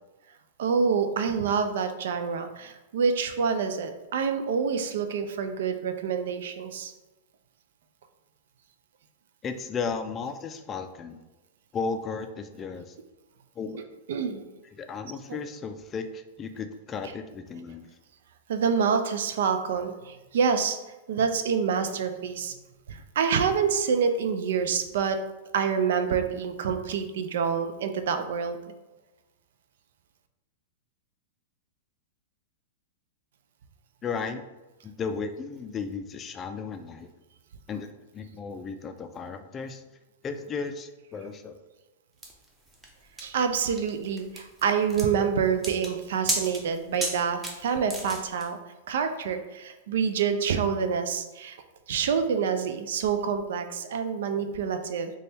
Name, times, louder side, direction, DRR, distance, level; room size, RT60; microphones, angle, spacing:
voice 1, 0.6-6.9 14.1-14.4 18.5-22.6 22.9-25.2 25.5-28.6 43.2-48.6 48.9-51.6 51.9-55.1, right 6 dB, 75° right, 8 dB, 0.4 m, -27 dB
voice 2, 9.4-11.2 11.7-12.9 13.6-13.9 14.8-17.8 34.0-34.4 34.8-37.1 37.7-39.8 40.2-41.6, left 5 dB, 25° left, 8 dB, 0.3 m, -35 dB
sound 1, 42.2-48.5, right 1 dB, 10° right, 0.7 m, -35 dB
3.9 x 2.2 x 3.3 m, 1.1 s
hypercardioid pair, 125°, 0 cm